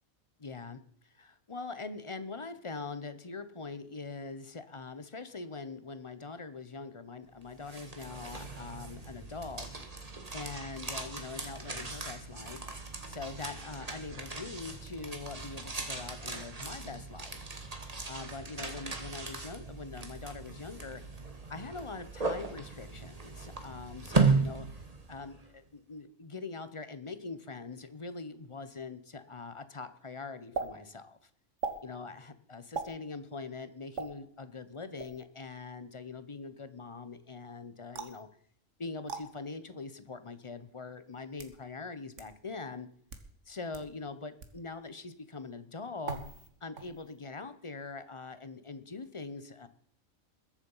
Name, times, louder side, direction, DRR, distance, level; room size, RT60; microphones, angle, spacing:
voice 1, 0.4-9.7 10.3-12.6 13.1-17.4 18.1-21.0 21.5-24.8 25.1-31.3 31.8-38.3 38.8-42.9 43.5-46.2 46.6-49.7, left 4 dB, 30° left, 12 dB, 0.8 m, -43 dB
sound 1, 7.4-25.4, right 4 dB, 30° right, 1.6 m, -36 dB
sound 2, 30.5-30.7 31.6-31.8 32.7-32.9 33.9-34.1 35.0-35.2 37.9-38.2 39.1-39.2 40.2-40.3 41.1-41.6 42.2-42.3 43.0-43.3 43.7-43.8 44.4-44.6 46.0-46.5 46.8-47.2, right 5 dB, 70° right, 1.7 m, -38 dB
21.0 x 7.3 x 5.5 m, 0.63 s
omnidirectional pair, 1.3 m